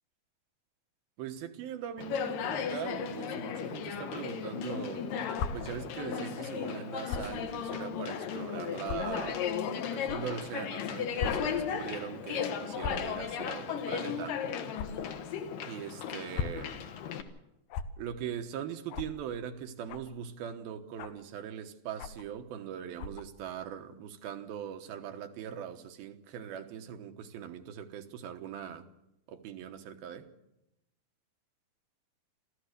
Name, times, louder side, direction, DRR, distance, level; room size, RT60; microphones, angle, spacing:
voice 1, 1.2-9.5 9.9-14.4 15.7-16.7 18.0-28.8 29.3-30.3, right 9 dB, 85° right, 3.1 m, -41 dB
Conversation, 2.0-17.2, left 7 dB, 70° left, 2.9 m, -35 dB
sound 1, 5.3-5.5 7.1-7.3 8.1-8.2 8.8-9.0 10.0-10.2 11.2-11.3 11.6-11.8 12.8-13.1 14.7-14.9 16.1-16.6 17.7-17.9 18.9-19.1 19.9-20.1 21.0-21.2 22.0-22.3 23.0-23.2, left 7 dB, 90° left, 2.9 m, -36 dB
28.0 x 14.0 x 6.7 m
omnidirectional pair, 4.2 m